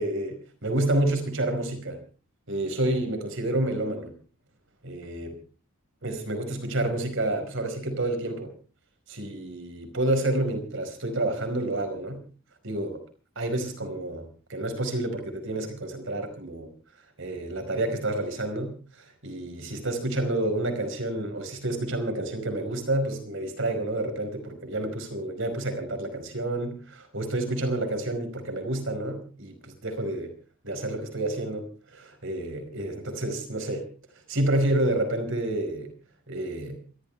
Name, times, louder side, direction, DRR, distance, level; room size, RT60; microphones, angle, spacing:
voice 1, 0.0-2.0 2.5-4.1 4.8-5.4 6.0-8.5 9.1-12.2 12.6-13.0 13.3-16.7 17.2-30.3 30.6-33.9 34.3-35.9 36.3-36.8, right 1 dB, 60° right, 7 dB, 4.9 m, -29 dB
28.5 x 13.5 x 3.4 m, 0.37 s
head